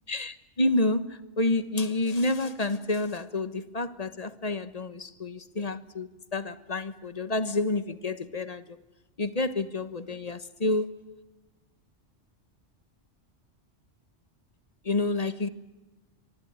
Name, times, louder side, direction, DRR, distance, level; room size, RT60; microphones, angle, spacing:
voice 1, 0.1-8.8 9.2-11.0 14.8-15.5, left 2 dB, 35° left, 1.3 m, -29 dB
25.0 x 24.0 x 8.8 m
omnidirectional pair, 1.2 m